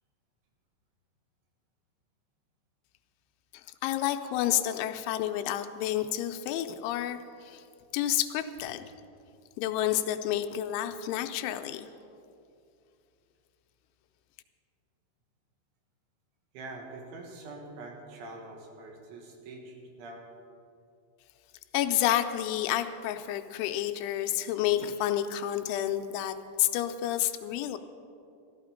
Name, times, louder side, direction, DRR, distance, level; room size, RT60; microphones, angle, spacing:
voice 1, 3.8-7.6 7.9-8.8 9.6-11.9 21.7-27.8, left 12 dB, 85° left, 8 dB, 3.0 m, -30 dB
voice 2, 16.5-20.3, right 2 dB, 80° right, 1 dB, 4.0 m, -44 dB
14.5 x 13.5 x 5.1 m, 2.5 s
omnidirectional pair, 5.5 m